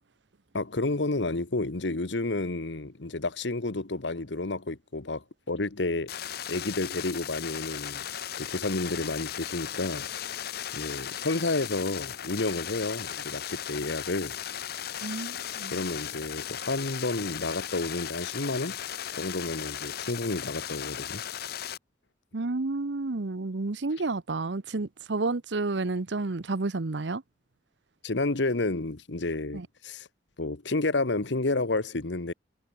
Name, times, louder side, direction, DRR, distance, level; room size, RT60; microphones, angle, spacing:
voice 1, 0.5-6.1 6.5-8.0 8.4-10.1 10.7-14.4 15.7-18.8 19.1-21.2 28.0-30.1 30.4-32.3, left 2 dB, 80° left, 1.4 m, -30 dB
sound 1, 6.1-21.8, left 10 dB, 60° left, 0.8 m, -37 dB
voice 2, 15.0-15.8 22.3-27.2 29.5-29.7, right 3 dB, 75° right, 0.9 m, -30 dB
head